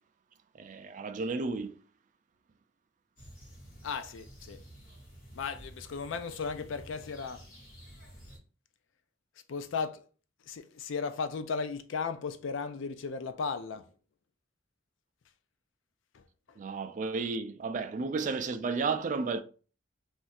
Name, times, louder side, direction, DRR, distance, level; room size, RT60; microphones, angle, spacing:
voice 1, 0.6-1.8 16.6-19.4, right 4 dB, 40° right, 0.3 m, -32 dB
sound 1, 3.2-8.4, equal, 45° left, 1.2 m, -51 dB
voice 2, 3.8-4.6 5.3-7.5 9.5-10.0 10.5-13.9 16.1-16.2, left 5 dB, 70° left, 0.4 m, -36 dB
2.5 x 2.4 x 4.1 m
head